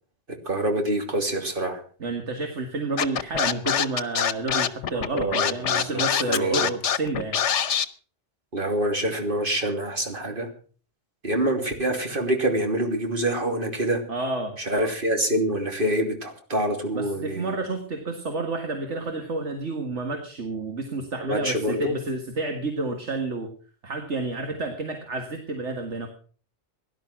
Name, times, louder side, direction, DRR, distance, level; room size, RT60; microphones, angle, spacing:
voice 1, 0.4-1.8 4.9-6.7 8.5-10.5 11.2-14.0 14.6-17.5 21.2-21.9, right 1 dB, 50° right, 4 dB, 3.2 m, -26 dB
voice 2, 2.0-7.4 14.1-14.6 16.9-23.5 23.8-26.1, right 2 dB, 75° right, 4 dB, 2.2 m, -30 dB
Scratching (performance technique), 3.0-7.9, left 8 dB, 80° left, 1.2 m, -24 dB
17.5 x 11.5 x 6.0 m, 0.42 s
omnidirectional pair, 1.2 m